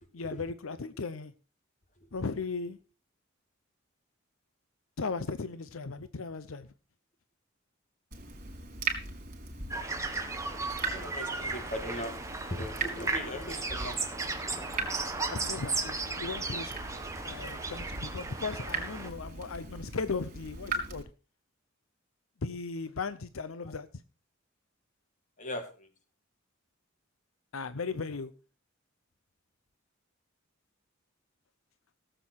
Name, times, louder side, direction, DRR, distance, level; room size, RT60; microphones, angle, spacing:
voice 1, 0.1-1.3 2.1-2.8 5.0-6.7 15.3-16.7 17.2-21.1 22.4-23.9 27.5-28.3, left 4 dB, 85° left, 0.7 m, -36 dB
Water tap faucet / Drip, 8.1-21.0, right 3 dB, 45° right, 3.8 m, -40 dB
sound 1, 9.7-19.1, right 3 dB, 15° right, 1.6 m, -35 dB
voice 2, 10.9-12.2 12.5-14.2 25.4-25.9, left 1 dB, 35° left, 2.3 m, -39 dB
17.0 x 7.8 x 4.6 m
head